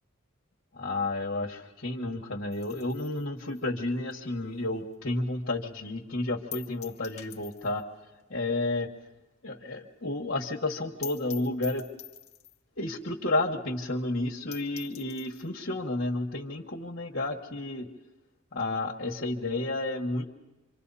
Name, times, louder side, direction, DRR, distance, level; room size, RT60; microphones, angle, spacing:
voice 1, 0.7-7.8 8.3-8.9 9.4-11.8 12.8-17.9 18.5-20.2, left 2 dB, 50° left, -2 dB, 1.6 m, -31 dB
sound 1, 2.5-5.2 5.5-5.6 5.9-6.0 6.5-7.9 8.2-8.3 8.6-8.7 9.1-9.2 9.4-9.5 9.8-9.9 10.2-10.3 10.7-10.8 11.0-12.7 13.4-13.5 13.8-13.9 14.2-14.3 14.5-15.5, left 10 dB, 30° left, 1.4 m, -46 dB
27.0 x 25.0 x 4.2 m, 1.0 s
head